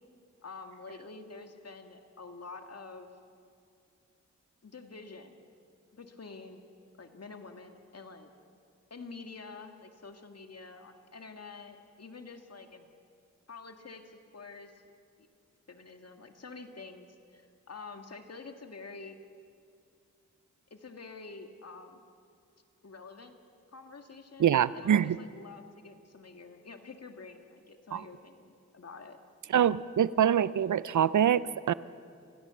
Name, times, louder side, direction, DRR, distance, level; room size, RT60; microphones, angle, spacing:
voice 1, 0.4-3.1 4.6-5.5 5.9-6.6 7.0-8.3 8.9-12.9 13.5-14.8 15.2-15.3 15.7-19.2 20.7-22.0 22.8-23.3 23.7-29.2, left 4 dB, 55° left, 5 dB, 2.1 m, -48 dB
voice 2, 24.4-25.2 27.9-28.0 29.5-31.7, right 9 dB, 75° right, 18 dB, 0.6 m, -25 dB
27.5 x 17.0 x 7.1 m, 2.4 s
cardioid pair, 55°, 30 cm